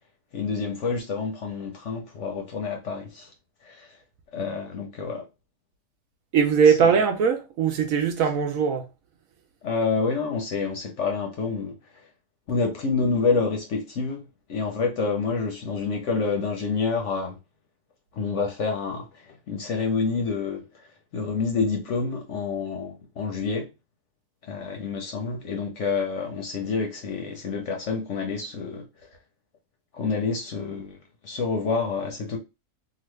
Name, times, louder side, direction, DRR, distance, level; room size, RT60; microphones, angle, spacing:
voice 1, 0.3-3.3 3.6-3.9 4.3-5.2 6.8-7.0 9.6-11.8 12.5-17.4 18.1-20.9 21.1-23.7 24.4-28.8 29.9-31.0 31.2-32.4, left 4 dB, 60° left, 0.9 m, -28 dB
voice 2, 6.3-8.8, right 6 dB, 65° right, 0.9 m, -20 dB
2.9 x 2.5 x 3.1 m
omnidirectional pair, 1.7 m